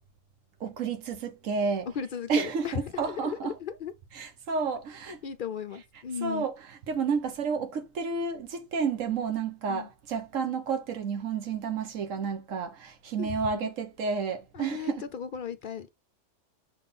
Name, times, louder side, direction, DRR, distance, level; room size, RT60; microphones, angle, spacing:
voice 1, 0.6-1.9 2.3-3.5 4.1-5.2 6.2-6.5 6.9-15.0, right 5 dB, 85° right, 1.3 m, -31 dB
voice 2, 1.9-3.9 5.1-6.5 9.7-9.9 13.2-13.4 14.5-15.9, left 8 dB, 60° left, 0.5 m, -36 dB
6.6 x 3.6 x 4.0 m
omnidirectional pair, 1.3 m